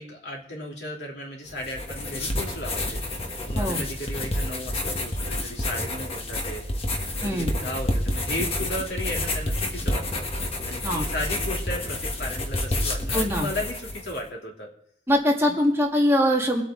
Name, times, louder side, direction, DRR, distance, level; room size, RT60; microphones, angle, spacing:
voice 1, 0.0-3.0 3.5-6.7 7.2-10.2 10.7-14.7 15.5-15.6, left 1 dB, 80° left, -2 dB, 3.0 m, -35 dB
sound 1, 1.5-14.2, left 1 dB, 35° left, 1.4 m, -29 dB
voice 2, 13.1-13.5 15.1-16.6, equal, 15° right, -1 dB, 1.7 m, -22 dB
22.5 x 8.3 x 3.8 m, 0.68 s
head